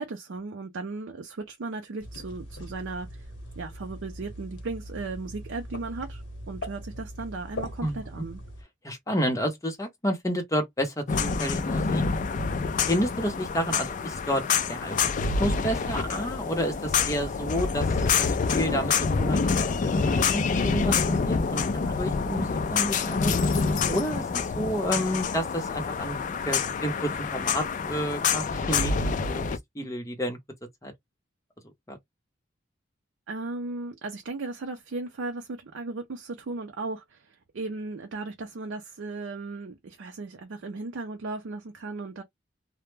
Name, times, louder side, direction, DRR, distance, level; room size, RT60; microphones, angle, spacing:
voice 1, 0.0-3.3 3.6-8.4 33.3-42.2, right 3 dB, 80° right, 0.5 m, -36 dB
sound 1, 2.0-8.6, equal, 70° left, 0.9 m, -40 dB
voice 2, 8.8-12.0 12.9-14.4 14.7-23.3 23.9-29.4 29.7-30.4 30.8-30.9 31.9-32.0, equal, 15° left, 0.7 m, -30 dB
sound 2, 11.1-29.6, left 5 dB, 40° left, 0.3 m, -27 dB
2.1 x 2.1 x 3.1 m
head